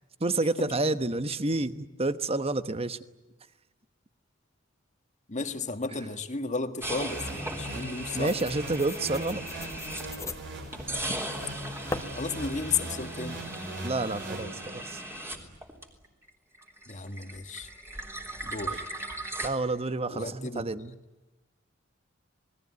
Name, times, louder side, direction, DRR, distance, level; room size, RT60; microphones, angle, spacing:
voice 1, 0.2-3.0 8.1-9.5 13.8-15.0 19.4-20.9, right 2 dB, 30° right, 12 dB, 1.2 m, -29 dB
voice 2, 5.3-8.3 12.1-13.4 16.9-17.7 18.4-18.8 20.1-20.6, left 4 dB, 40° left, 8 dB, 1.7 m, -33 dB
sound 1, 6.8-10.3 10.7-16.3 16.5-19.5, right 1 dB, 15° right, 3.4 m, -38 dB
sound 2, 6.8-15.0, right 1 dB, 65° right, 6.4 m, -40 dB
sound 3, 8.2-14.4, left 2 dB, 15° left, 1.4 m, -43 dB
27.5 x 20.5 x 9.5 m, 1.1 s
head